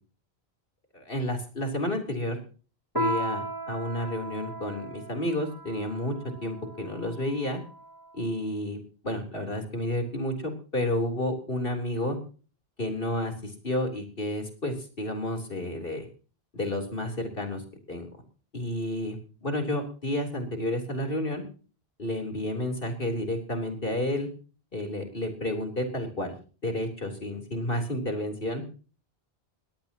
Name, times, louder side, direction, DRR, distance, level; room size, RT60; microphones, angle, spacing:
voice 1, 0.9-2.4 2.9-7.6 8.1-8.8 9.0-12.2 12.8-16.1 16.5-17.6 17.9-18.1 18.5-19.2 19.4-21.4 22.0-24.3 24.7-26.4 26.6-28.6, left 1 dB, 60° left, 3 dB, 4.0 m, -31 dB
Piano, 3.0-7.9, right 1 dB, 20° right, 1.4 m, -35 dB
21.5 x 17.5 x 3.0 m, 0.39 s
omnidirectional pair, 1.1 m